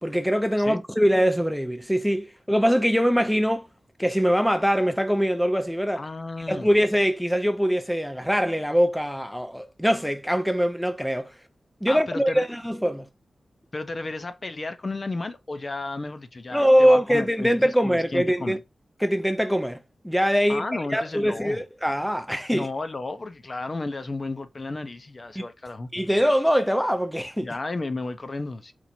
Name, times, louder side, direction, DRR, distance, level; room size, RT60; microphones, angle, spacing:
voice 1, 0.0-3.7 4.0-6.0 6.5-11.3 11.8-13.1 16.5-18.6 19.0-22.7 25.4-25.5 25.9-27.5, equal, ahead, 0.5 m, -23 dB
voice 2, 6.0-6.7 11.9-12.5 13.7-18.6 20.5-21.6 22.5-25.9 27.4-28.7, left 2 dB, 45° left, 0.6 m, -33 dB
4.4 x 2.6 x 4.2 m
wide cardioid pair, 75°, 0 cm